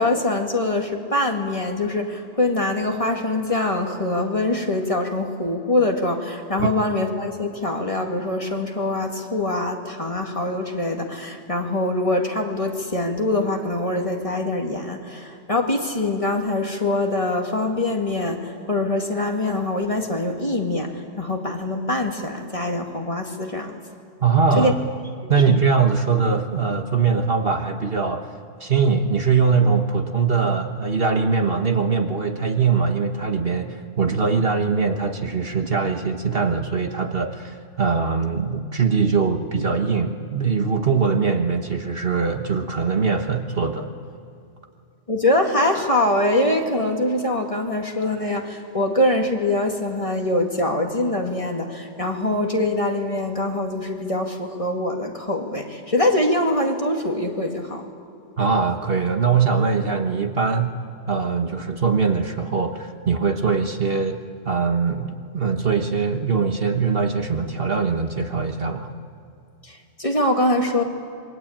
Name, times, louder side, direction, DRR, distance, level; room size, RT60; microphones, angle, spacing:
voice 1, 0.0-23.8 24.6-24.7 25.5-25.6 45.1-57.9 69.6-70.8, left 1 dB, 25° left, 2 dB, 2.3 m, -23 dB
voice 2, 24.2-24.8 25.3-28.3 28.6-43.9 58.4-60.8 61.1-68.9, right 5 dB, 50° right, 5 dB, 1.5 m, -22 dB
27.0 x 23.5 x 8.8 m, 2.6 s
omnidirectional pair, 1.3 m